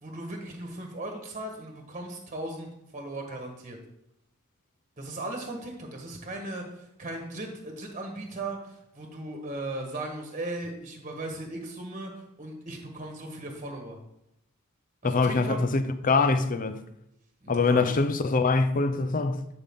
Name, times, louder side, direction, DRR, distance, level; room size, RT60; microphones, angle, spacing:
voice 1, 0.0-3.8 5.0-14.0 15.0-15.6 17.4-18.0, right 2 dB, 35° right, 1.4 m, -37 dB
voice 2, 15.0-16.8 17.5-19.6, left 3 dB, 40° left, 0.6 m, -24 dB
11.5 x 5.3 x 3.7 m
head